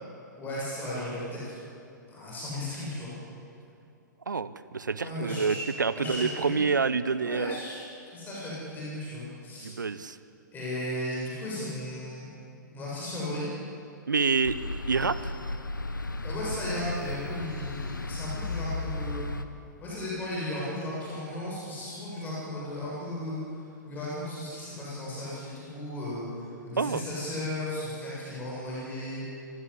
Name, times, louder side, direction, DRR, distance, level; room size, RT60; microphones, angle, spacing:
voice 1, 0.4-1.5 2.1-3.2 5.0-5.6 5.9-6.6 7.2-9.7 10.5-12.3 12.7-13.5 16.2-19.3 19.8-23.4 23.8-29.2, left 1 dB, 15° left, -7 dB, 7.8 m, -35 dB
voice 2, 4.3-7.6 9.6-10.2 14.1-14.6 14.9-15.3 26.8-27.0, right 5 dB, 70° right, 15 dB, 0.9 m, -27 dB
sound 1, 14.4-19.4, left 2 dB, 75° left, 1.2 m, -35 dB
28.5 x 16.0 x 8.5 m, 2.6 s
figure-of-eight pair, 110°, 10 cm